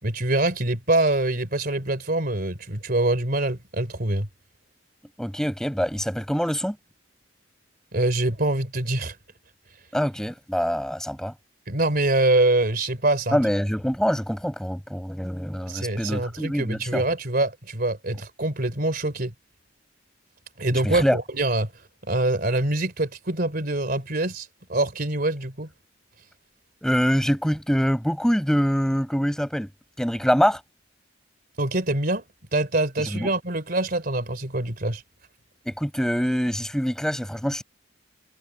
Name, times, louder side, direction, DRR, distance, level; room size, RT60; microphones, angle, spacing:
voice 1, 0.0-4.3 7.9-9.1 11.7-13.4 15.7-19.3 20.6-21.7 22.1-25.7 31.6-32.2 32.5-35.0, right 2 dB, 50° right, 3.2 m, -24 dB
voice 2, 5.2-6.8 9.9-11.3 13.3-17.0 20.8-21.2 26.8-29.7 30.0-30.6 33.1-33.3 35.6-37.6, equal, 5° left, 6.7 m, -24 dB
head